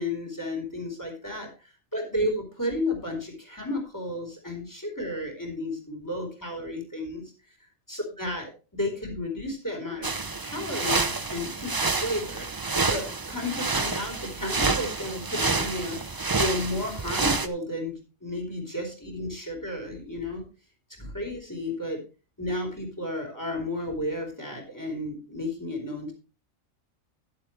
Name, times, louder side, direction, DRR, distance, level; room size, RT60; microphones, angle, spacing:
voice 1, 0.0-7.2 7.9-10.1 10.4-12.5 12.9-16.0 16.4-17.9 18.2-20.4 21.0-22.0 22.4-26.1, left 1 dB, 15° left, 2 dB, 4.2 m, -32 dB
sound 1, 10.0-17.5, right 3 dB, 25° right, 0.5 m, -28 dB
11.5 x 11.5 x 3.2 m, 0.32 s
omnidirectional pair, 1.3 m